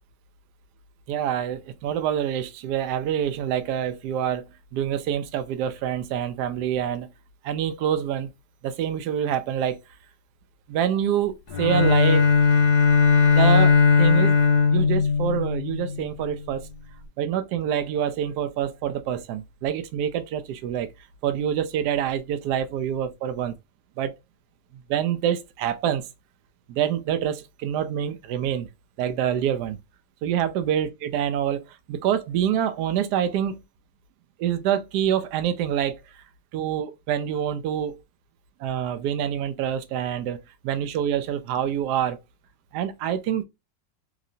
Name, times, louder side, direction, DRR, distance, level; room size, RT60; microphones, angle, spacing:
voice 1, 1.1-4.4 4.7-7.1 7.4-8.3 8.6-9.8 10.7-12.3 13.3-14.4 14.7-16.7 17.2-20.9 21.2-23.5 24.0-24.1 24.9-26.1 26.7-28.7 29.0-29.8 30.2-33.6 34.4-36.0 36.5-38.0 38.6-40.4 40.6-42.2 42.7-43.4, right 9 dB, 75° right, 1.0 m, -26 dB
Bowed string instrument, 11.5-16.1, left 5 dB, 65° left, 1.1 m, -18 dB
2.9 x 2.9 x 2.6 m
omnidirectional pair, 2.0 m